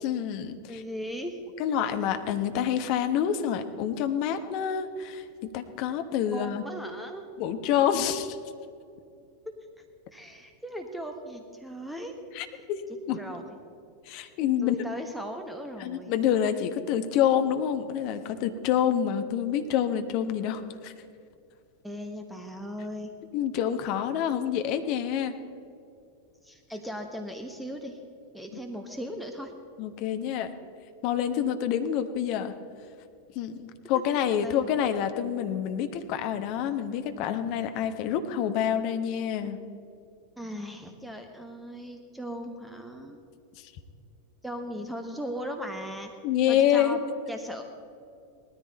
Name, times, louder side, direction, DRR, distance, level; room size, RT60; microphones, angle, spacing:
voice 1, 0.0-0.8 1.6-5.2 5.5-6.6 7.4-8.4 12.3-13.2 14.1-14.8 15.8-20.9 23.3-25.3 29.8-30.5 31.0-32.5 33.3-39.6 46.2-47.0, left 9 dB, 45° left, 8 dB, 1.1 m, -27 dB
voice 2, 0.7-1.4 6.3-7.3 9.5-9.6 10.1-12.2 13.2-13.6 14.6-16.1 21.8-23.1 26.4-28.0 28.3-29.5 33.9-34.0 34.4-34.7 40.4-43.2 44.4-46.1 46.5-47.0 47.3-47.6, equal, ahead, 4 dB, 1.2 m, -38 dB
18.5 x 13.5 x 4.0 m, 2.5 s
figure-of-eight pair, 90°, 0 cm